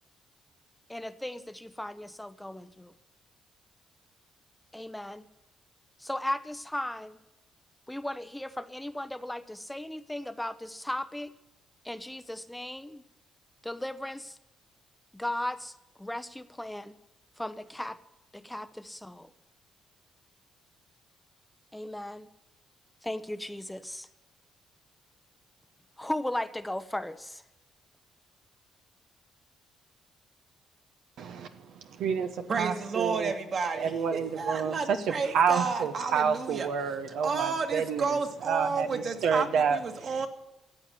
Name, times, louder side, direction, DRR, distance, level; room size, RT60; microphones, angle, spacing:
voice 1, 0.9-2.9 4.7-5.3 6.0-7.2 7.9-11.3 11.8-13.0 13.6-14.4 15.1-15.7 16.0-17.0 17.4-18.0 18.3-19.3 21.7-22.3 23.0-24.1 26.0-27.4, left 1 dB, 5° left, 11 dB, 0.7 m, -36 dB
voice 2, 31.2-31.5 32.0-33.3 33.8-34.8 35.1-38.1 38.4-40.1, right 6 dB, 80° right, 7 dB, 1.0 m, -29 dB
voice 3, 32.5-36.7 37.2-40.3, right 4 dB, 50° right, 5 dB, 2.1 m, -31 dB
14.5 x 8.2 x 9.6 m, 0.99 s
cardioid pair, 90°, 0 cm